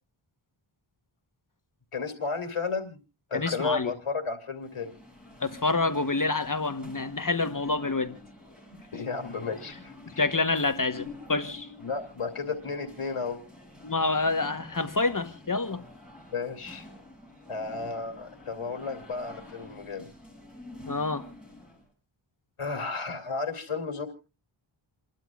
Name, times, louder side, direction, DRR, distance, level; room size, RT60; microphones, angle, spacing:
voice 1, 1.9-3.0 3.3-4.9 8.9-10.2 11.8-13.4 16.3-16.9 17.5-20.1 22.6-24.1, left 4 dB, 90° left, 2.7 m, -33 dB
voice 2, 3.3-3.9 5.4-8.2 10.2-11.7 13.8-15.8 20.9-21.3, left 3 dB, 40° left, 1.1 m, -27 dB
sound 1, 4.5-21.9, left 2 dB, ahead, 7.1 m, -48 dB
28.5 x 12.0 x 2.4 m
wide cardioid pair, 60°, 50 cm